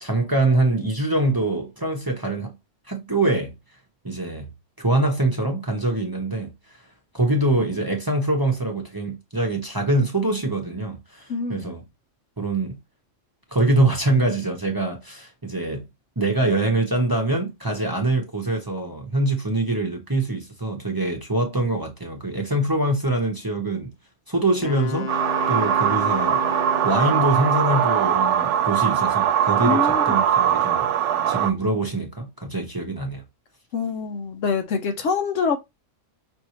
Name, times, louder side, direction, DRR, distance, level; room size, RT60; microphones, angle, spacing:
voice 1, 0.0-2.5 2.9-3.5 4.0-4.5 4.8-6.5 7.1-11.8 12.4-12.8 13.5-15.8 16.2-23.9 24.3-25.1 25.5-26.4 26.8-30.9 31.3-33.2, right 2 dB, 20° right, 0.9 m, -24 dB
voice 2, 11.3-11.7 29.6-30.2 33.7-35.6, left 5 dB, 80° left, 1.2 m, -25 dB
Wind instrument woodwind instrument, 24.6-27.8, left 4 dB, 60° left, 0.9 m, -32 dB
sound 1, 25.1-31.5, right 9 dB, 75° right, 0.9 m, -21 dB
5.6 x 2.6 x 3.0 m
omnidirectional pair, 1.3 m